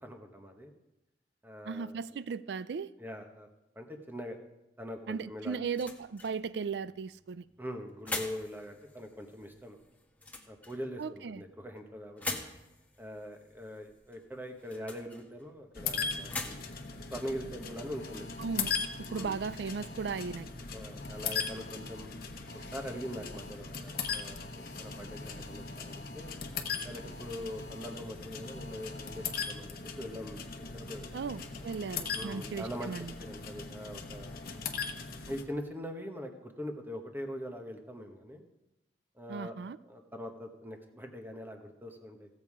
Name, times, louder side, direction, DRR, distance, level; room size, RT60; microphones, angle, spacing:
voice 1, 0.0-0.7 1.4-2.0 3.0-3.5 3.7-4.4 4.8-5.6 7.6-9.8 10.5-12.4 13.0-16.6 17.1-18.3 19.1-19.4 20.7-22.1 22.7-24.5 24.8-26.3 26.8-31.3 32.1-32.9 33.2-34.3 35.3-38.4 39.1-39.5 39.9-42.3, equal, 10° right, 4 dB, 1.2 m, -42 dB
voice 2, 1.6-2.9 5.1-7.4 11.0-11.4 18.4-18.7 19.0-20.5 31.1-33.1 39.3-39.8, right 5 dB, 70° right, 17 dB, 0.4 m, -36 dB
sound 1, 4.9-18.4, left 2 dB, 10° left, 1.2 m, -45 dB
sound 2, 15.7-35.4, left 5 dB, 55° left, 1.0 m, -39 dB
sound 3, 18.0-20.4 21.0-22.0 22.5-23.5 23.9-26.3 26.9-28.0 28.4-29.5, left 2 dB, 80° left, 0.7 m, -54 dB
16.0 x 7.4 x 4.8 m, 0.92 s
head